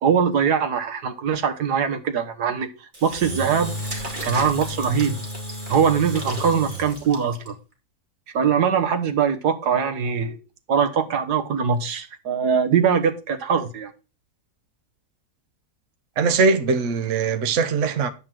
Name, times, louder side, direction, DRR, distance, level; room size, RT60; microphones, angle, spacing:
voice 1, 0.0-2.7 3.0-3.7 4.2-5.2 5.7-7.5 8.3-10.4 10.7-13.9, right 7 dB, 85° right, 1.7 m, -22 dB
Engine / Drill, 2.9-7.5, right 1 dB, 30° right, 2.4 m, -32 dB
voice 2, 16.2-18.1, right 4 dB, 55° right, 1.2 m, -21 dB
10.5 x 4.0 x 7.5 m
omnidirectional pair, 1.7 m